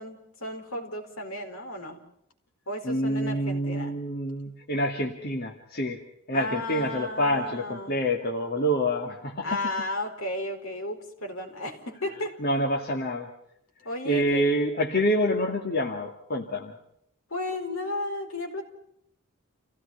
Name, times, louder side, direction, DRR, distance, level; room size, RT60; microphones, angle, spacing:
voice 1, 0.0-2.0 2.7-4.0 4.4-4.5 6.3-7.9 9.4-12.4 13.8-14.4 17.3-18.6, left 1 dB, 65° left, 4 dB, 4.5 m, -34 dB
voice 2, 2.8-6.0 6.3-9.5 12.4-13.3 14.1-16.8, equal, 45° left, 1 dB, 2.2 m, -27 dB
29.5 x 17.0 x 5.7 m, 0.75 s
head